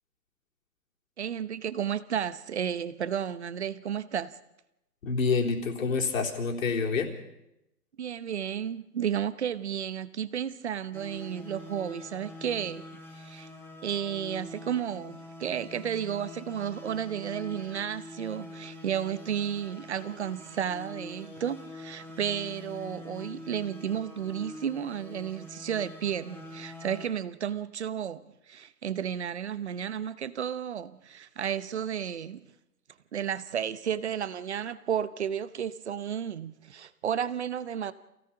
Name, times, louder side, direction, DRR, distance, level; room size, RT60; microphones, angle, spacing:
voice 1, 1.2-4.3 8.0-13.5 13.8-28.2 28.5-32.4 33.1-37.9, right 9 dB, 40° right, 0.9 m, -32 dB
voice 2, 5.0-7.1, left 4 dB, 50° left, 3.7 m, -27 dB
sound 1, 10.9-27.1, left 2 dB, 5° left, 3.1 m, -45 dB
28.0 x 16.5 x 5.9 m
hypercardioid pair, 170°, 49 cm